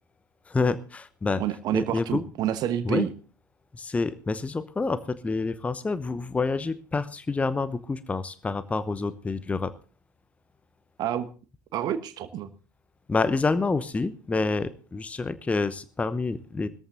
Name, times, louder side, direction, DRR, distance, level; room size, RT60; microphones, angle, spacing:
voice 1, 0.5-1.4 1.7-2.3 2.8-3.1 3.7-9.7 13.1-16.7, left 3 dB, 15° left, 15 dB, 0.9 m, -28 dB
voice 2, 1.4-3.1 11.0-11.3 11.7-12.5, right 10 dB, 40° right, 11 dB, 1.2 m, -28 dB
20.5 x 14.0 x 2.7 m, 0.37 s
figure-of-eight pair, 70°, 10 cm